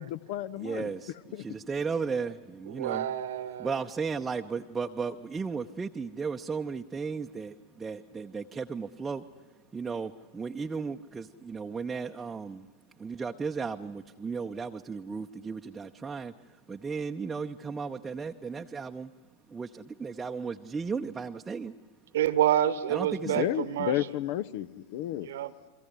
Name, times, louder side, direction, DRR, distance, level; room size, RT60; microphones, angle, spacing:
voice 1, 0.0-0.9 1.3-1.6 23.2-25.3, left 12 dB, 50° left, 18 dB, 0.7 m, -32 dB
voice 2, 0.6-3.1 3.6-9.3 9.7-12.7 13.0-16.3 16.7-19.1 19.5-21.7 22.9-23.4, right 5 dB, 15° right, 3 dB, 0.8 m, -35 dB
voice 3, 2.7-3.7 22.1-23.9 25.3-25.5, right 11 dB, 60° right, 16 dB, 1.2 m, -28 dB
29.5 x 23.0 x 8.1 m, 1.4 s
figure-of-eight pair, 90°, 0 cm